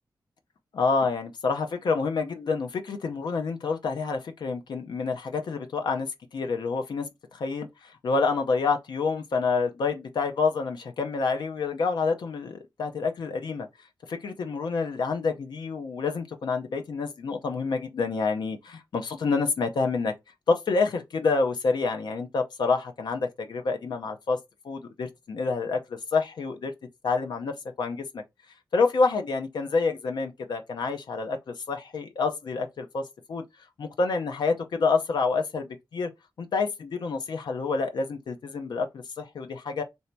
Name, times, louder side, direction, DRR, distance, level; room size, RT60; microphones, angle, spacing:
voice 1, 0.7-13.7 14.1-20.1 20.5-24.4 24.6-26.7 27.0-28.2 28.7-33.0 33.3-33.4 33.8-36.1 36.4-39.8, left 4 dB, 70° left, 0.6 m, -28 dB
3.3 x 2.7 x 4.4 m
wide cardioid pair, 160°, 8 cm